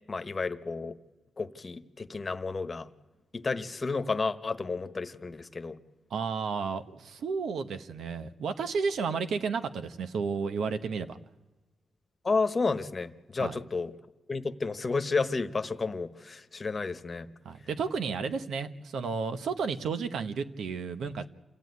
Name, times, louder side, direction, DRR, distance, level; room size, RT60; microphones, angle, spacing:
voice 1, 0.1-1.0 1.4-2.9 3.3-5.8 12.2-13.9 14.3-17.3, left 4 dB, 30° left, 10 dB, 1.2 m, -31 dB
voice 2, 6.1-11.2 13.4-13.6 17.4-21.3, right 5 dB, 85° right, 10 dB, 1.2 m, -32 dB
28.0 x 15.0 x 9.6 m, 1.2 s
wide cardioid pair, 110°, 0 cm